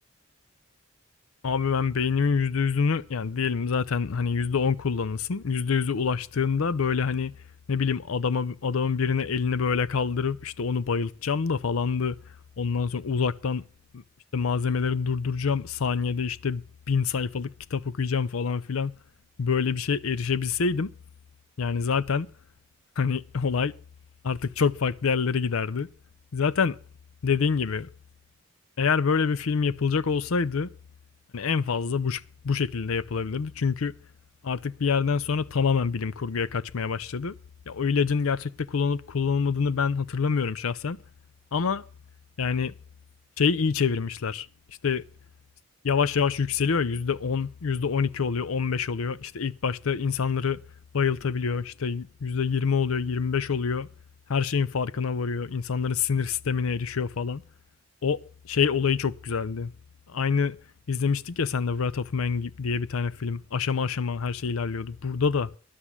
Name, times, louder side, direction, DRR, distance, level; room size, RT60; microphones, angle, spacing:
voice 1, 1.4-7.3 7.7-12.2 12.6-13.6 13.9-14.0 14.3-16.6 16.9-19.0 19.4-20.9 21.6-22.3 23.0-23.7 24.2-25.9 26.3-26.8 27.2-27.9 28.8-30.7 31.3-33.9 34.4-37.4 37.7-41.0 41.5-41.8 42.4-42.7 43.4-45.0 45.8-50.6 50.9-53.9 54.3-57.4 58.0-59.7 60.1-60.6 60.9-65.5, left 5 dB, 85° left, 0.6 m, -26 dB
11.5 x 8.1 x 7.2 m
head